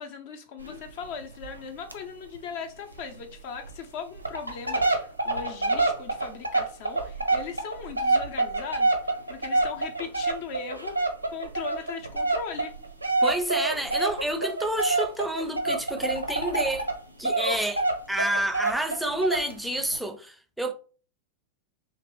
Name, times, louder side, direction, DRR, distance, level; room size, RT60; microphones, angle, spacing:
voice 1, 0.0-12.7, left 6 dB, 50° left, 0.7 m, -39 dB
sound 1, 0.6-1.0 1.4-1.6 1.9-2.0 2.3-2.4 3.0-3.1 3.7-3.8 4.2-17.0 17.2-19.5 19.9-20.0, right 2 dB, 85° right, 0.6 m, -27 dB
voice 2, 13.2-16.9 17.2-20.7, right 1 dB, 5° right, 0.5 m, -29 dB
2.9 x 2.9 x 3.0 m
figure-of-eight pair, 90°, 0 cm